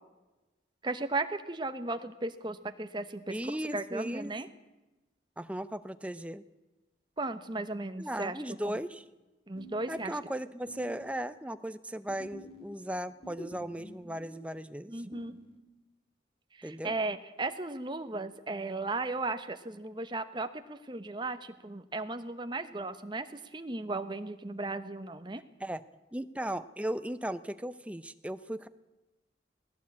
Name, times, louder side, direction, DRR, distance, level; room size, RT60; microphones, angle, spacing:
voice 1, 0.8-4.5 7.2-8.4 8.6-8.8 9.5-10.1 14.9-15.4 16.6-25.4, right 2 dB, 25° right, 9 dB, 1.0 m, -36 dB
voice 2, 3.3-4.3 5.4-6.4 8.0-9.0 9.9-15.0 16.6-16.9 25.6-25.8 26.1-28.7, right 1 dB, 5° right, 12 dB, 0.6 m, -37 dB
sound 1, 9.5-11.8 12.1-15.6, equal, 30° left, 2.0 m, -50 dB
18.5 x 16.5 x 8.5 m, 1.1 s
head